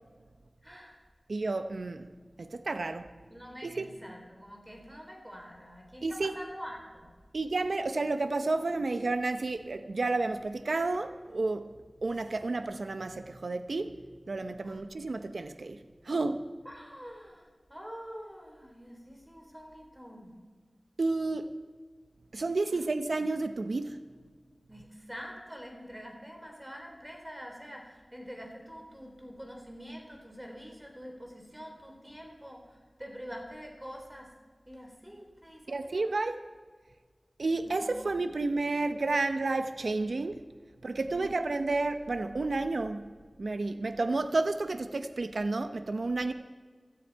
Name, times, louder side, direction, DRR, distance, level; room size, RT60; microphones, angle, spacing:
voice 1, 0.6-1.0 3.3-7.1 14.6-14.8 16.7-20.4 24.7-34.3 34.7-36.2 37.6-38.2 41.1-41.4, equal, 10° right, 1 dB, 3.4 m, -46 dB
voice 2, 1.3-3.2 3.6-3.9 6.0-6.3 7.3-11.7 12.0-13.9 14.3-15.8 16.0-16.5 21.0-21.5 22.3-24.0 35.7-36.4 37.4-40.4 40.8-43.1 43.4-46.3, right 3 dB, 90° right, 9 dB, 0.7 m, -31 dB
17.0 x 13.5 x 4.7 m, 1.5 s
wide cardioid pair, 65°, 0 cm